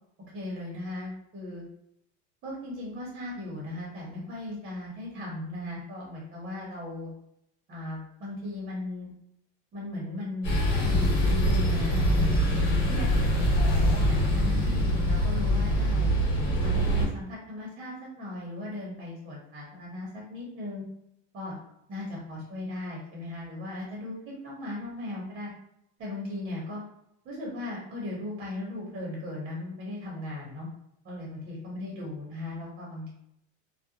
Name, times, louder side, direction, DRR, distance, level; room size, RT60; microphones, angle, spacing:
voice 1, 0.3-1.6 2.4-7.1 7.7-9.1 9.7-10.6 10.8-16.1 16.6-20.8 21.3-21.6 21.9-25.5 26.0-26.8 27.2-30.7 31.0-33.1, left 1 dB, 25° right, -4 dB, 0.7 m, -37 dB
sound 1, 10.4-17.0, equal, 65° left, 1.3 m, -24 dB
2.3 x 2.1 x 2.7 m, 0.76 s
supercardioid pair, 150°, 35 cm